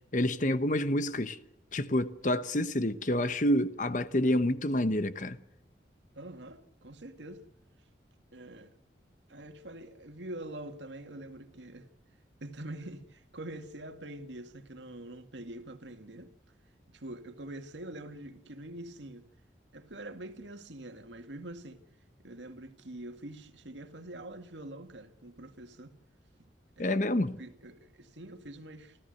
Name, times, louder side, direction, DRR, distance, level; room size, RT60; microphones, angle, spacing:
voice 1, 0.1-1.4 1.7-5.4 26.8-27.3, left 1 dB, 45° left, 1.1 m, -28 dB
voice 2, 6.1-7.4 8.3-8.8 9.3-11.9 12.4-16.3 16.9-19.3 19.7-21.8 22.2-25.9 26.4-26.5 26.8-27.0 27.4-29.0, right 1 dB, 85° right, 2.2 m, -45 dB
29.0 x 14.0 x 6.7 m
head